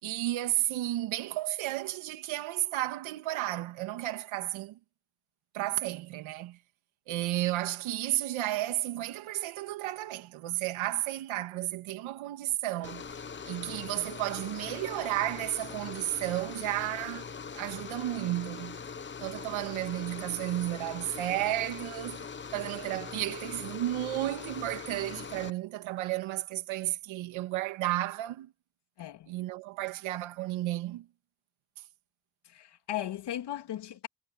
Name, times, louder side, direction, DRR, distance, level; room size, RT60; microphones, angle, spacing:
voice 1, 0.0-4.8 5.5-6.6 7.1-13.1 13.4-18.8 19.2-28.5 29.3-31.1, right 15 dB, 90° right, 2.7 m, -33 dB
sound 1, 12.8-25.5, left 6 dB, 25° left, 1.1 m, -42 dB
voice 2, 29.0-29.3 32.5-34.1, left 12 dB, 60° left, 3.2 m, -37 dB
cardioid pair, 135°, 46 cm